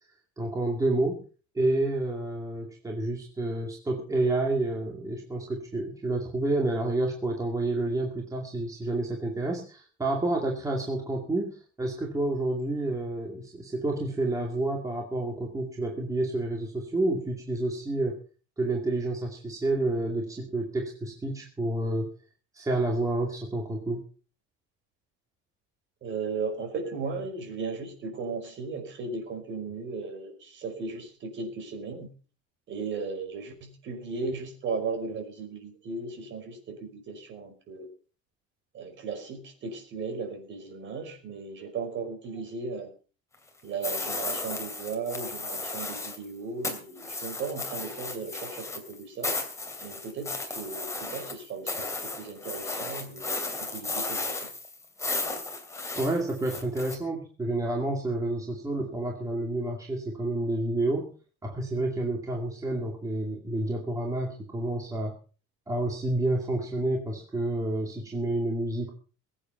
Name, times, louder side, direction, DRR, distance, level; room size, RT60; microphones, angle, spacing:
voice 1, 0.4-1.2 1.5-18.2 18.6-22.1 22.5-24.0 56.0-61.1 61.4-65.1 65.7-68.9, right 2 dB, 10° right, 0 dB, 2.5 m, -29 dB
voice 2, 26.0-32.1 32.7-37.9 38.7-42.9 43.6-49.4 49.8-54.5, right 4 dB, 40° right, 5 dB, 5.4 m, -36 dB
sound 1, 43.8-46.2 46.6-57.0, left 3 dB, 10° left, 2.8 m, -34 dB
22.0 x 8.7 x 5.8 m, 0.39 s
cardioid pair, 175°, 29 cm